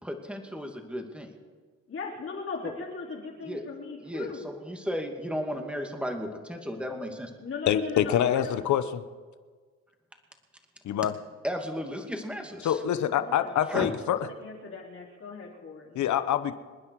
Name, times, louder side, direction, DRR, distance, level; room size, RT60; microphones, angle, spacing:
voice 1, 0.0-1.3 2.6-2.7 3.4-3.6 4.0-7.3 11.4-12.8 13.7-13.9, equal, 5° right, 3 dB, 2.5 m, -34 dB
voice 2, 1.9-4.5 7.4-8.6 13.2-13.6 14.1-16.0, left 4 dB, 45° left, -3 dB, 3.9 m, -38 dB
voice 3, 7.7-9.0 10.8-11.1 12.6-14.2 15.9-16.6, left 10 dB, 70° left, 12 dB, 1.1 m, -25 dB
27.5 x 9.8 x 4.8 m, 1.5 s
cardioid pair, 90°, 30 cm